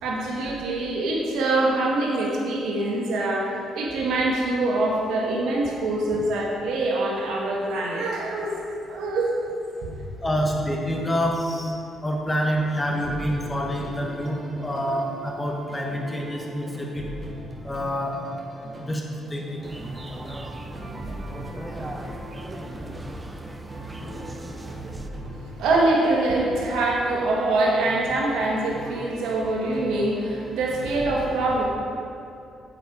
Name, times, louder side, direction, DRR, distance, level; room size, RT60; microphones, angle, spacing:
voice 1, 0.0-8.6 8.9-9.4 9.8-9.9 25.3-31.6, right 2 dB, 85° right, -2 dB, 1.4 m, -24 dB
voice 2, 10.2-11.7 12.0-17.0 17.6-18.2 18.8-19.0 19.3-19.6, equal, 15° left, -1 dB, 1.2 m, -27 dB
sound 1, 12.5-31.1, equal, 40° right, 1.5 m, -40 dB
sound 2, 19.6-25.1, right 1 dB, 15° right, 0.7 m, -38 dB
8.4 x 7.7 x 4.8 m, 2.6 s
cardioid pair, 90°, 0 cm